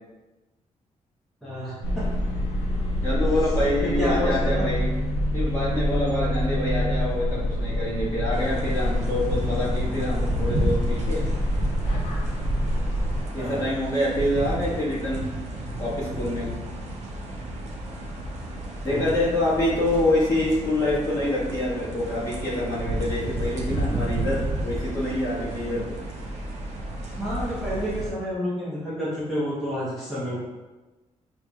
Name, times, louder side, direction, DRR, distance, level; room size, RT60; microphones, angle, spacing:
voice 1, 1.4-2.1 3.8-4.7 13.4-13.6 18.8-19.1 27.1-30.4, equal, ahead, -10 dB, 0.9 m, -29 dB
sound 1, 1.8-13.2, equal, 75° left, 1.0 m, -26 dB
voice 2, 3.0-4.9 5.3-11.2 13.3-15.2 15.7-16.5 18.8-26.0, left 1 dB, 25° left, -9 dB, 1.4 m, -26 dB
Amic del vent, 8.3-28.1, right 1 dB, 65° right, 0.6 m, -31 dB
5.6 x 2.7 x 2.3 m, 1.1 s
wide cardioid pair, 160°, 12 cm